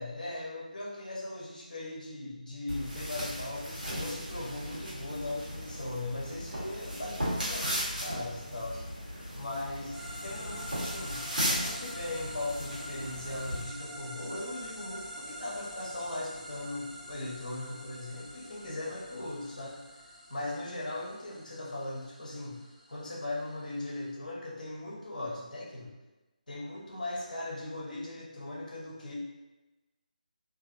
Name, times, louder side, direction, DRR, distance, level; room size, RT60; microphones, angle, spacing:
voice 1, 0.0-8.8 9.3-11.2 11.5-19.8 20.3-22.6 22.9-25.9 26.5-29.2, left 2 dB, 65° left, -4 dB, 0.9 m, -39 dB
sound 1, 2.7-13.6, equal, 85° right, 1.2 m, -36 dB
sound 2, 9.9-24.1, equal, 5° left, 0.8 m, -46 dB
2.7 x 2.6 x 2.6 m, 1.1 s
figure-of-eight pair, 155°, 5 cm